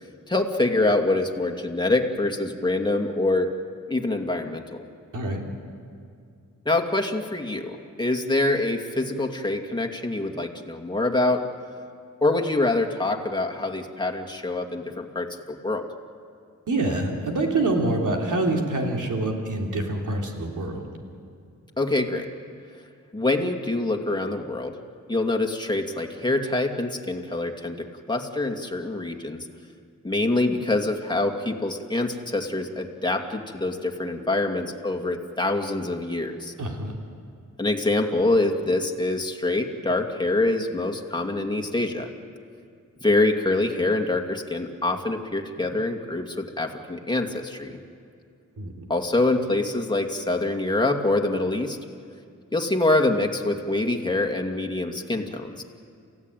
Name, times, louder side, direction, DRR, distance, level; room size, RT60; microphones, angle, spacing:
voice 1, 0.3-3.5 3.9-4.8 6.6-11.4 12.2-15.9 21.8-22.3 23.1-24.8 25.1-29.5 30.0-36.5 37.6-42.1 43.0-47.8 48.9-51.8 52.5-55.6, left 2 dB, 15° left, 2 dB, 2.5 m, -25 dB
voice 2, 16.7-20.8 36.6-36.9 48.6-48.9, right 2 dB, 80° right, 1 dB, 3.4 m, -26 dB
28.5 x 16.0 x 9.1 m, 2.4 s
cardioid pair, 70°, 31 cm